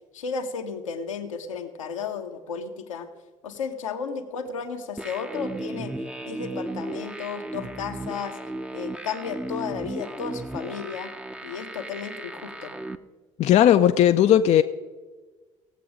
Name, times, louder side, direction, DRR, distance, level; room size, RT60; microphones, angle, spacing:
voice 1, 0.1-3.1 3.4-6.0 6.2-8.4 8.7-11.1 11.4-12.7, left 6 dB, 75° left, 0.9 m, -33 dB
sound 1, 5.0-13.0, right 1 dB, 5° right, 0.7 m, -35 dB
voice 2, 13.4-14.6, left 10 dB, 40° left, 0.5 m, -17 dB
17.0 x 7.6 x 5.1 m
figure-of-eight pair, 50°, 17 cm